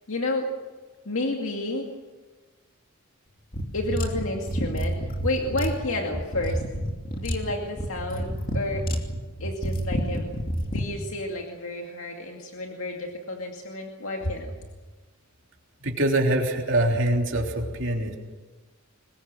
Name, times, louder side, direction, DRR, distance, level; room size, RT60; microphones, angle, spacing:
voice 1, 0.1-0.5 1.1-1.9 3.7-6.6 7.2-8.9 9.4-10.3 10.6-14.5, left 2 dB, 70° left, 1 dB, 2.3 m, -31 dB
sound 1, 3.5-10.9, equal, 40° left, 2.7 m, -29 dB
voice 2, 15.8-18.1, right 1 dB, 60° right, 1 dB, 3.4 m, -24 dB
23.5 x 21.0 x 7.6 m, 1.3 s
head